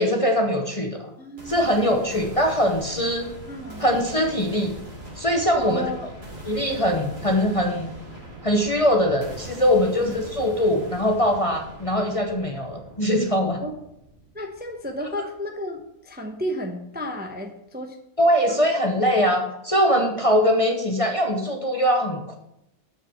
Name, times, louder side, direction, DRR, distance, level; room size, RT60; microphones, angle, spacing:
voice 1, 0.0-1.1 1.5-3.3 3.8-4.7 5.2-5.9 6.5-7.9 8.4-13.6 18.2-22.4, equal, 30° left, 3 dB, 0.9 m, -22 dB
voice 2, 1.2-1.9 3.5-3.8 5.6-6.1 9.7-10.2 13.6-13.8 14.3-18.0 18.5-18.6, equal, 10° right, 3 dB, 0.7 m, -33 dB
sound 1, 1.4-15.3, right 1 dB, 45° right, 3.0 m, -42 dB
6.7 x 5.7 x 7.3 m, 0.81 s
omnidirectional pair, 1.4 m